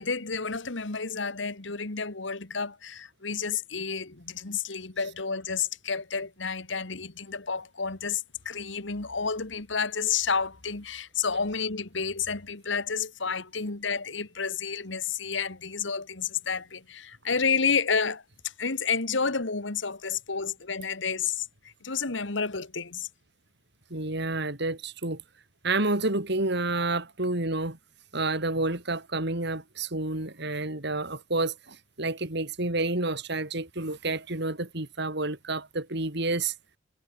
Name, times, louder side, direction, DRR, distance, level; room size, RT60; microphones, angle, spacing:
voice 1, 0.0-23.1, left 5 dB, 70° left, 1.8 m, -30 dB
voice 2, 23.9-25.2 25.6-27.8 28.1-36.5, right 2 dB, 60° right, 4.0 m, -29 dB
head